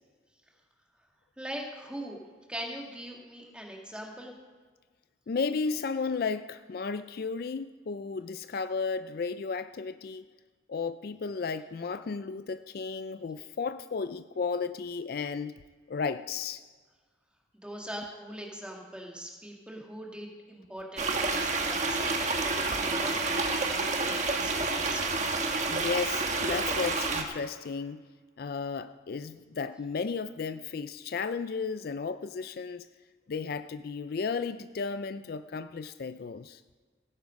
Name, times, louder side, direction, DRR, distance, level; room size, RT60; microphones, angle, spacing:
voice 1, 1.4-2.2 2.5-4.3 17.6-25.1, equal, 5° right, -1 dB, 2.0 m, -41 dB
voice 2, 5.3-10.2 10.7-15.6 15.9-16.6 25.7-28.0 28.4-32.9 33.3-36.6, left 5 dB, 55° left, 12 dB, 0.4 m, -34 dB
sound 1, 21.0-27.2, right 3 dB, 40° right, 1.3 m, -29 dB
17.0 x 9.9 x 5.2 m, 1.5 s
head